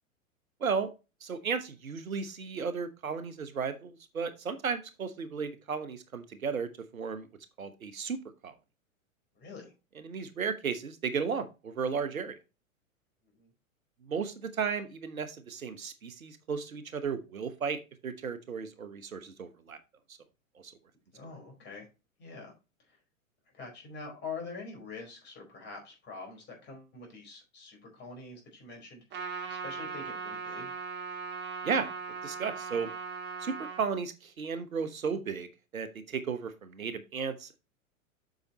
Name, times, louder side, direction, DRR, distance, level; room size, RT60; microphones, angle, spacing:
voice 1, 0.6-0.9 1.2-7.3 7.6-8.5 10.0-12.4 14.0-19.8 20.6-20.7 31.6-31.9 32.2-32.9 33.4-37.6, right 6 dB, 75° right, 11 dB, 1.2 m, -34 dB
voice 2, 9.3-9.7 13.3-13.5 21.1-21.9 22.2-22.5 22.9-23.0 23.5-30.7, left 4 dB, 25° left, 2 dB, 4.7 m, -45 dB
Trumpet, 29.1-33.8, right 5 dB, 25° right, 2.2 m, -39 dB
7.8 x 6.5 x 2.9 m, 0.28 s
figure-of-eight pair, 100°, 41 cm